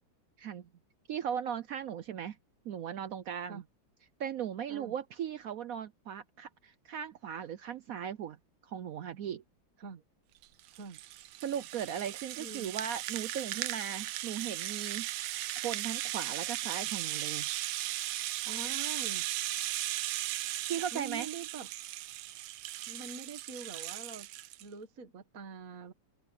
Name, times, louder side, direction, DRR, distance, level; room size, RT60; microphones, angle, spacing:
voice 1, 0.4-0.7 1.1-2.4 2.6-3.6 4.2-8.4 8.6-9.4 11.4-15.1 15.6-17.5 20.7-21.3, right 9 dB, 70° right, 0.8 m, -37 dB
Rattle (instrument), 10.4-24.6, right 15 dB, 90° right, 1.5 m, -37 dB
voice 2, 12.4-12.7 18.4-19.3 20.9-21.7 22.9-24.3 24.6-25.9, right 5 dB, 45° right, 1.9 m, -44 dB
omnidirectional pair, 2.1 m